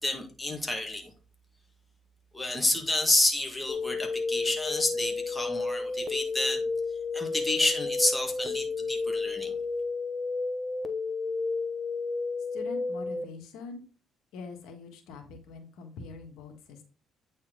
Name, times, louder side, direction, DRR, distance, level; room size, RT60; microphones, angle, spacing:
voice 1, 0.0-1.1 2.3-6.7 7.1-9.5, left 2 dB, 10° left, 2 dB, 1.8 m, -29 dB
sound 1, 3.7-13.2, left 4 dB, 30° left, 0.9 m, -32 dB
voice 2, 12.5-13.8 14.3-16.8, left 4 dB, 85° left, 4 dB, 1.5 m, -43 dB
8.9 x 4.3 x 3.8 m, 0.35 s
cardioid pair, 95°, 0 cm